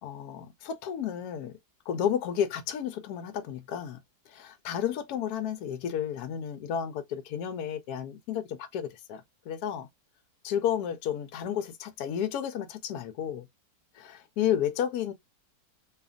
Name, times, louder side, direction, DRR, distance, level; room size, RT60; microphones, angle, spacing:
voice 1, 0.0-1.5 1.9-4.0 4.3-9.9 10.4-13.5 14.0-15.1, left 9 dB, 75° left, 1.1 m, -32 dB
2.8 x 2.4 x 2.4 m
omnidirectional pair, 1.7 m